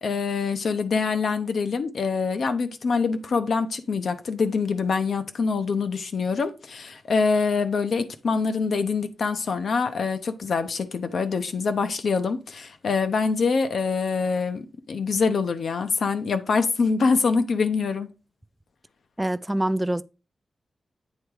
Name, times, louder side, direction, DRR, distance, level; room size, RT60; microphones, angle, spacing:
voice 1, 0.0-18.1, left 4 dB, 70° left, 0.8 m, -25 dB
voice 2, 19.2-20.0, right 1 dB, 10° right, 0.4 m, -25 dB
8.6 x 3.6 x 4.8 m
wide cardioid pair, 125°, 0 cm